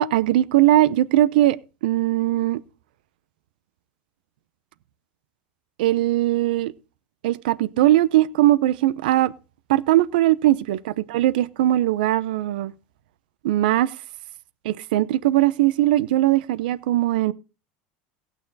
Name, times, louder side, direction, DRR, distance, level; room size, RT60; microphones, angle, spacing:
voice 1, 0.0-1.6 1.8-2.6 5.8-6.7 7.2-9.3 9.7-12.7 13.4-13.9 14.6-17.3, right 14 dB, 85° right, 0.7 m, -20 dB
16.0 x 9.1 x 4.0 m
supercardioid pair, 115°, 5 cm